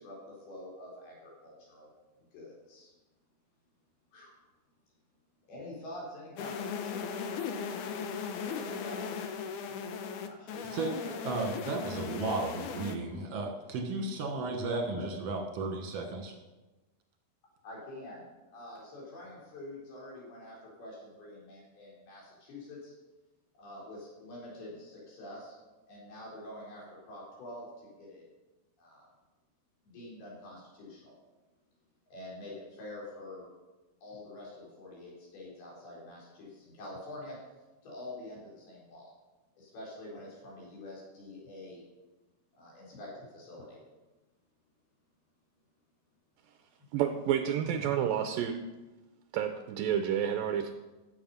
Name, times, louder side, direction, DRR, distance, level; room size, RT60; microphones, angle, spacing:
voice 1, 0.0-1.9 2.2-2.9 4.1-4.3 5.5-7.0 8.4-9.4 9.8-11.3 14.9-15.1 17.6-18.2 18.5-22.9 23.6-25.6 25.9-28.2 28.8-29.1 29.8-31.2 32.1-33.5 34.0-37.4 37.8-39.1 39.6-41.8 42.6-43.8, left 1 dB, 70° left, -4 dB, 5.8 m, -46 dB
sound 1, 6.4-13.0, left 6 dB, 90° left, 1.8 m, -37 dB
voice 2, 11.2-16.3 47.9-48.0, right 3 dB, 55° right, 3 dB, 1.8 m, -34 dB
voice 3, 46.9-48.6 49.3-50.7, right 9 dB, 85° right, 7 dB, 2.0 m, -30 dB
14.5 x 7.8 x 5.6 m, 1.1 s
omnidirectional pair, 4.7 m